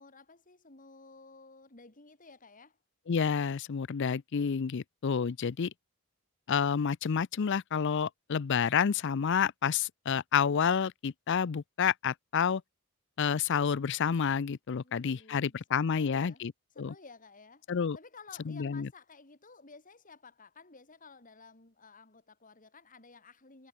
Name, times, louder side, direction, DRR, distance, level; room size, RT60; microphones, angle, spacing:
voice 1, 0.0-2.8 14.8-15.6 15.8-16.4 16.7-17.6 17.9-23.7, left 4 dB, 40° left, 2.8 m, -54 dB
voice 2, 3.1-5.7 6.5-12.6 13.2-16.9 17.7-18.0 18.5-18.9, left 7 dB, 55° left, 0.5 m, -29 dB
head